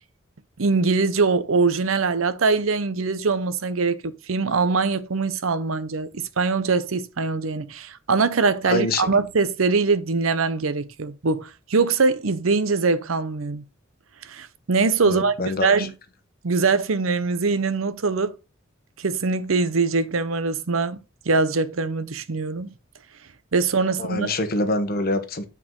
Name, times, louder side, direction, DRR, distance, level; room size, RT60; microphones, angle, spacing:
voice 1, 0.6-13.6 14.3-15.4 15.6-15.9 16.4-18.3 19.0-21.0 21.3-22.7 23.5-24.3, right 4 dB, 85° right, 0.8 m, -22 dB
voice 2, 8.6-9.1 15.0-15.9 24.0-25.4, left 2 dB, 50° left, 1.2 m, -25 dB
8.7 x 4.6 x 3.8 m
head